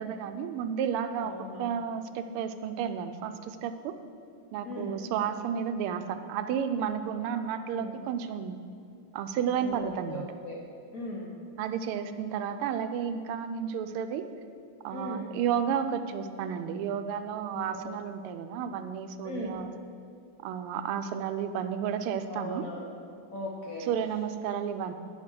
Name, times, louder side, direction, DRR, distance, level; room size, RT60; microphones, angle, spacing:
voice 1, 0.0-1.3 1.6-3.9 4.5-8.6 9.1-10.3 11.6-14.2 14.8-19.7 20.4-22.7 23.8-24.9, right 8 dB, 85° right, 9 dB, 1.5 m, -32 dB
voice 2, 1.2-1.7 4.6-5.0 7.3-7.4 7.7-7.9 9.6-10.6 10.9-11.3 14.9-15.3 17.5-18.0 19.2-19.5 22.3-22.9 23.3-23.9, left 1 dB, 55° left, -1 dB, 1.0 m, -38 dB
10.5 x 4.9 x 6.1 m, 2.3 s
omnidirectional pair, 2.4 m